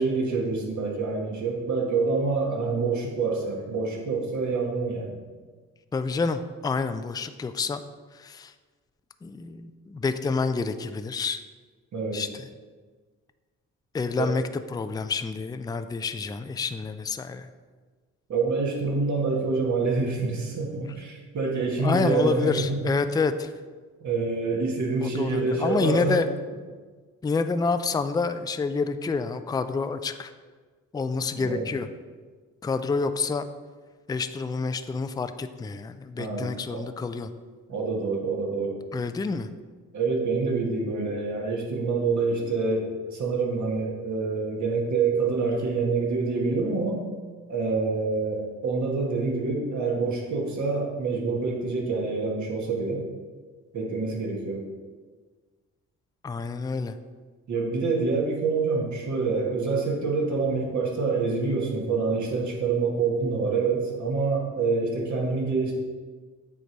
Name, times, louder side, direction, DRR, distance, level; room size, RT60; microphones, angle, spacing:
voice 1, 0.0-5.1 11.9-12.2 14.2-14.3 18.3-22.8 24.0-26.2 31.3-31.7 36.2-36.9 37.7-38.8 39.9-47.0 47.5-53.0 53.7-54.6 57.5-65.7, right 4 dB, 60° right, -1 dB, 1.7 m, -26 dB
voice 2, 5.9-7.8 8.1-8.5 9.2-11.4 12.1-12.5 13.9-14.4 14.7-17.5 21.8-23.5 25.0-26.3 27.2-30.3 30.9-31.9 32.6-33.5 34.1-37.3 38.9-39.5 56.2-57.0, left 4 dB, 15° left, 10 dB, 0.3 m, -28 dB
7.8 x 3.2 x 5.2 m, 1.4 s
supercardioid pair, 65°, 32 cm